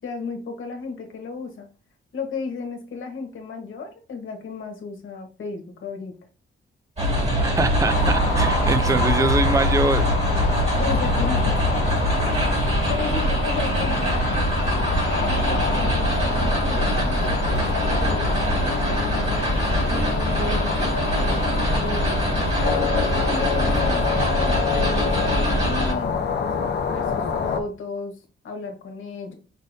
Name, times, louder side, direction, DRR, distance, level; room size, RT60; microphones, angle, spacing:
voice 1, 0.0-1.7 2.1-6.1 10.7-14.5 15.2-19.5 19.9-26.5 26.9-29.3, left 4 dB, 70° left, 3 dB, 1.3 m, -34 dB
sound 1, 7.0-25.9, equal, 30° right, 2.1 m, -23 dB
voice 2, 7.4-10.1, right 3 dB, 15° right, 11 dB, 0.4 m, -23 dB
sound 2, 7.8-27.6, left 5 dB, 55° left, 0.7 m, -27 dB
sound 3, 8.0-11.8, right 1 dB, 50° right, 1.7 m, -35 dB
5.3 x 3.7 x 2.6 m, 0.35 s
cardioid pair, 110°, 21 cm